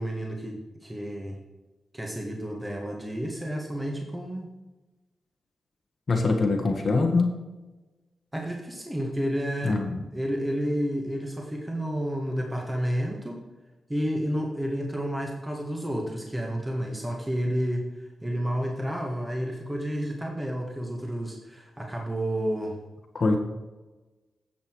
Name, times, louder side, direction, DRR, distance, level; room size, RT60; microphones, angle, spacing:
voice 1, 0.0-1.4 1.9-4.5 8.3-9.8 10.1-13.4 13.9-22.8, equal, 15° right, 0 dB, 1.9 m, -30 dB
voice 2, 6.1-7.3 9.6-10.0 23.1-23.4, left 3 dB, 55° left, 3 dB, 1.4 m, -23 dB
10.0 x 7.2 x 4.8 m, 1.1 s
cardioid pair, 65°, 0 cm